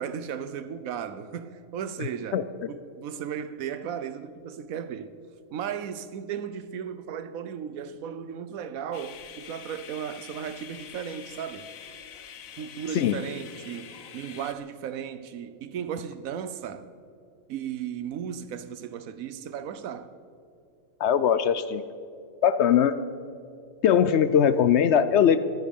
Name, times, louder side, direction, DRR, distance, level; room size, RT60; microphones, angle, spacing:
voice 1, 0.0-2.4 2.7-5.1 5.5-11.7 12.6-16.9 17.5-20.1, right 8 dB, 85° right, 1.2 m, -35 dB
voice 2, 2.0-2.4 12.9-13.2 21.0-21.8 22.4-23.0 23.8-25.4, left 8 dB, 65° left, 0.8 m, -21 dB
sound 1, 8.9-14.5, left 8 dB, 85° left, 1.3 m, -45 dB
23.5 x 10.0 x 5.4 m
omnidirectional pair, 1.4 m